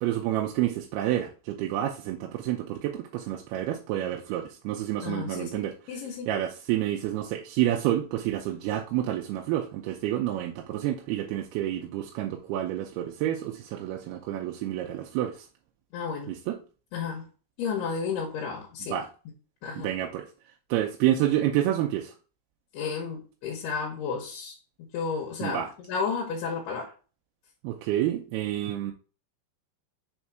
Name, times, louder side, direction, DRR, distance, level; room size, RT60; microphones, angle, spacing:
voice 1, 0.0-5.7 6.3-15.5 16.3-16.6 18.9-19.1 19.8-20.3 20.7-22.1 25.4-25.7 27.6-28.9, right 12 dB, 85° right, 2.6 m, -29 dB
voice 2, 5.0-6.3 15.9-16.3 16.9-17.3 17.6-19.0 19.6-19.9 22.7-24.6 24.9-26.9, left 5 dB, 85° left, 3.0 m, -32 dB
6.2 x 3.7 x 4.5 m
omnidirectional pair, 4.5 m